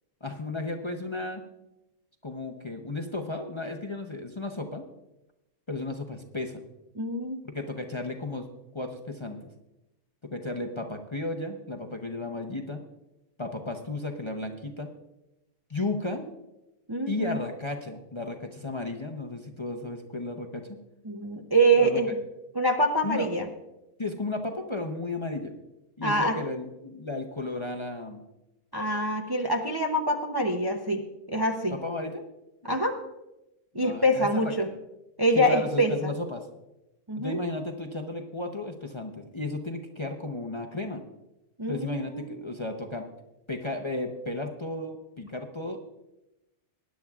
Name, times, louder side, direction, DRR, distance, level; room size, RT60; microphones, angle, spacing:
voice 1, 0.2-1.4 2.2-4.8 5.7-6.6 7.4-8.5 8.7-9.4 10.3-12.8 13.4-14.9 15.7-16.3 17.1-20.7 21.8-22.0 23.0-23.3 24.0-25.5 26.0-28.2 31.7-32.2 33.7-34.5 35.3-36.5 37.2-41.0 41.7-43.1 43.5-45.8, left 2 dB, 30° left, 3 dB, 0.7 m, -34 dB
voice 2, 7.0-7.4 16.9-17.4 21.1-22.1 22.5-23.4 26.0-26.3 28.7-31.8 32.6-33.0 33.7-34.7 35.2-35.9 37.1-37.4 41.6-42.3, right 1 dB, 25° right, 2 dB, 0.6 m, -25 dB
20.0 x 10.5 x 2.4 m, 0.93 s
omnidirectional pair, 1.3 m